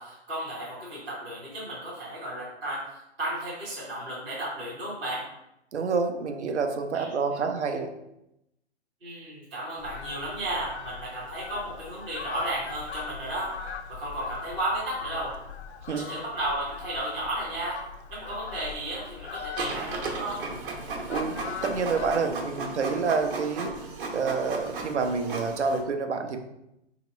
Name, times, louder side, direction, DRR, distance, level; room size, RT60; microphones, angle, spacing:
voice 1, 0.0-5.2 6.9-7.4 9.0-15.3 15.9-17.8 18.1-20.4, right 1 dB, 5° right, -11 dB, 0.4 m, -34 dB
voice 2, 5.7-8.0 15.9-16.1 21.1-23.8 24.1-26.4, right 4 dB, 85° right, 5 dB, 0.7 m, -28 dB
Fowl, 9.8-22.2, left 6 dB, 75° left, 0.6 m, -41 dB
Printer, 19.6-25.8, right 3 dB, 50° right, 0.9 m, -35 dB
3.0 x 2.9 x 4.1 m, 0.86 s
hypercardioid pair, 150°, 34 cm